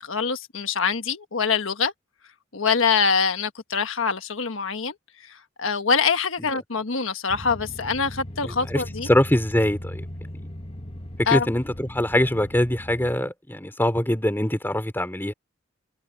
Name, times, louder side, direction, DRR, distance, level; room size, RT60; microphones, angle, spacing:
voice 1, 0.0-1.9 2.5-4.9 5.2-9.1 11.3-11.5, left 5 dB, 80° left, 1.3 m, -24 dB
sound 1, 7.3-13.2, left 1 dB, 30° left, 1.5 m, -38 dB
voice 2, 8.4-8.8 9.1-10.1 10.4-10.5 11.2-15.3, left 1 dB, 10° left, 2.9 m, -23 dB
head